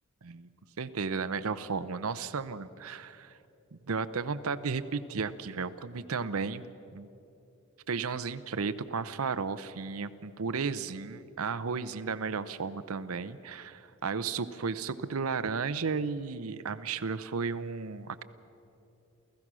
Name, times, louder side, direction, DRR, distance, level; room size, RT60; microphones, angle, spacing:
voice 1, 0.8-3.3 3.7-6.6 6.9-7.1 7.9-18.2, right 5 dB, 75° right, 12 dB, 0.7 m, -34 dB
29.0 x 15.0 x 6.2 m, 2.8 s
head